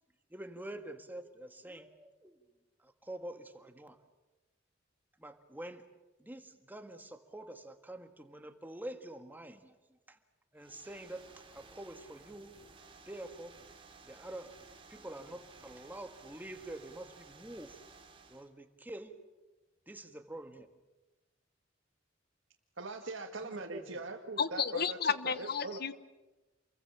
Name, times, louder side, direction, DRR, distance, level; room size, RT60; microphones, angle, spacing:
voice 1, 0.3-2.4 2.8-4.0 5.2-5.8 6.2-9.7 10.1-10.2 10.5-11.3 11.5-12.5 13.1-13.5 14.0-14.6 14.9-17.8 18.3-19.1 19.9-20.7 23.4-24.0, right 1 dB, 10° right, 6 dB, 1.8 m, -46 dB
sound 1, 10.6-18.5, right 4 dB, 30° right, 2.7 m, -57 dB
voice 2, 22.8-25.8, right 3 dB, 75° right, 1 dB, 1.9 m, -42 dB
voice 3, 24.4-25.9, left 6 dB, 55° left, 13 dB, 1.1 m, -32 dB
28.5 x 23.0 x 7.4 m, 1.1 s
head